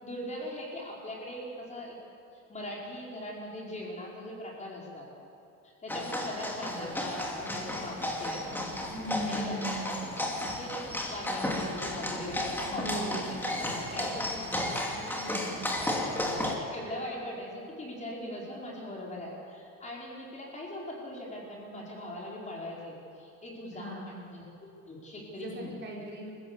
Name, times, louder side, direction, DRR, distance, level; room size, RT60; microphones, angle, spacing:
voice 1, 0.0-2.0 2.5-5.1 5.6-8.5 9.2-9.9 10.2-14.3 16.4-25.8, left 1 dB, 20° left, -3 dB, 5.0 m, -41 dB
sound 1, 5.9-16.6, left 1 dB, 5° left, 2.7 m, -33 dB
voice 2, 8.9-9.9 12.7-13.2 13.9-14.1 15.2-15.5 23.7-24.1 25.3-26.3, equal, 35° right, -3 dB, 5.0 m, -38 dB
28.0 x 15.5 x 7.2 m, 2.8 s
cardioid pair, 150°, 33 cm